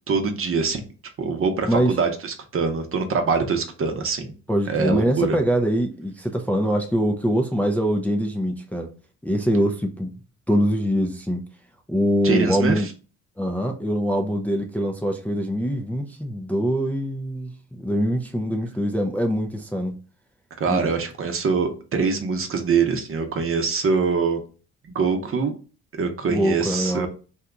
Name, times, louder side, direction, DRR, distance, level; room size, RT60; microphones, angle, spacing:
voice 1, 0.1-0.8 1.2-4.3 4.7-5.3 12.2-12.8 20.6-24.4 24.9-25.5 26.0-27.1, right 5 dB, 45° right, 6 dB, 0.8 m, -23 dB
voice 2, 1.6-2.0 4.5-8.9 9.2-10.1 10.5-11.4 11.9-12.9 13.4-19.9 20.7-20.8 26.3-27.1, equal, 5° left, 2 dB, 0.4 m, -23 dB
2.8 x 2.3 x 3.7 m, 0.36 s
cardioid pair, 90°, 30 cm